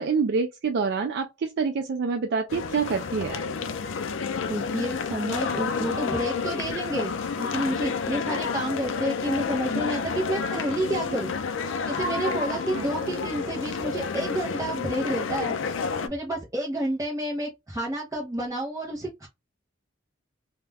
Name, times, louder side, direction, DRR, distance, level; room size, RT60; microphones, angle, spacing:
voice 1, 0.0-3.4 12.7-13.1, right 5 dB, 55° right, 0.4 m, -27 dB
sound 1, 2.5-16.1, left 5 dB, 70° left, 0.4 m, -30 dB
voice 2, 4.5-11.3 11.9-15.6 16.0-19.3, right 1 dB, 15° right, 0.6 m, -30 dB
2.4 x 2.1 x 3.2 m
head